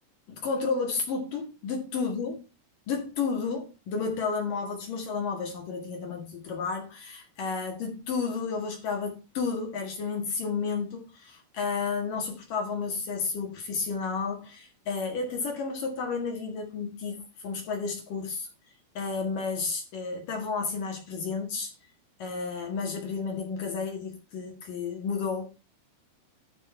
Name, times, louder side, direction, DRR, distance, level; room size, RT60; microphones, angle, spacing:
voice 1, 0.3-2.4 2.9-18.5 18.9-21.7 22.2-25.5, left 5 dB, 50° left, 3.2 m, -32 dB
12.0 x 6.5 x 4.5 m
omnidirectional pair, 5.6 m